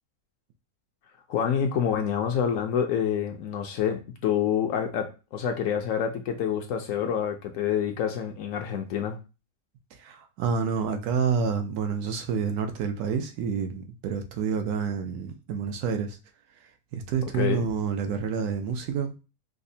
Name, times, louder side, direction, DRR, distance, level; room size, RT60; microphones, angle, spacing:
voice 1, 1.3-9.2 17.4-17.6, left 8 dB, 70° left, 4 dB, 0.8 m, -27 dB
voice 2, 9.9-16.2 16.9-19.1, right 6 dB, 80° right, 7 dB, 1.1 m, -28 dB
5.0 x 2.0 x 2.6 m, 0.30 s
omnidirectional pair, 1.6 m